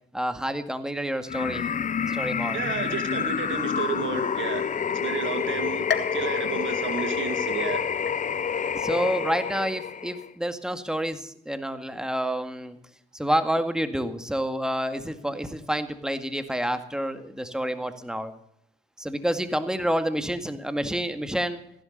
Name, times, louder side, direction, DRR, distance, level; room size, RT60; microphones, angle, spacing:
voice 1, 0.1-1.7 2.1-2.6 8.7-12.8 13.1-18.3 19.0-21.6, equal, 5° right, 9 dB, 2.0 m, -28 dB
sound 1, 1.3-10.3, left 7 dB, 40° left, 0.6 m, -28 dB
voice 2, 2.5-7.9, right 6 dB, 75° right, 8 dB, 2.2 m, -32 dB
sound 2, 5.9-7.6 8.1-8.6 9.1-9.2 10.2-10.3, left 7 dB, 60° left, 1.9 m, -34 dB
15.5 x 11.5 x 6.7 m, 0.70 s
supercardioid pair, 50°, 20 cm